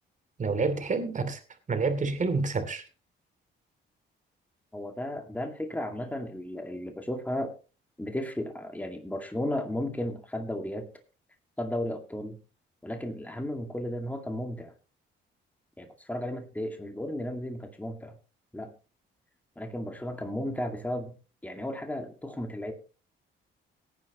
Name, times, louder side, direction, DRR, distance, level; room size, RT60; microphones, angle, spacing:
voice 1, 0.4-1.4 1.7-2.8, right 4 dB, 40° right, 2.8 m, -28 dB
voice 2, 4.7-7.6 8.0-10.9 11.6-12.4 12.8-14.7 15.8-18.2 18.5-18.7 19.6-21.1 21.4-22.7, left 1 dB, 10° left, 2.1 m, -34 dB
18.0 x 9.5 x 3.0 m
cardioid pair, 90°, 20 cm